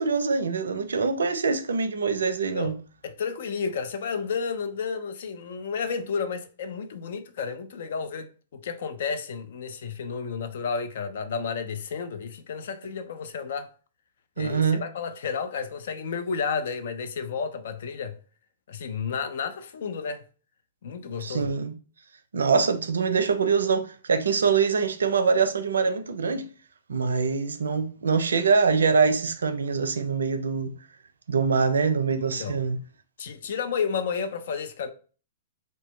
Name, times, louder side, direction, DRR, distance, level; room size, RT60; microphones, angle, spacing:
voice 1, 0.0-2.8 14.4-14.8 21.2-21.7 22.3-26.5 26.9-30.7 31.3-32.8, right 5 dB, 75° right, 0.4 m, -24 dB
voice 2, 3.0-13.7 14.4-18.2 18.7-20.2 20.8-21.6 32.2-32.6 33.2-34.9, left 6 dB, 60° left, 0.4 m, -32 dB
2.7 x 2.2 x 3.1 m
figure-of-eight pair, 110°, 0 cm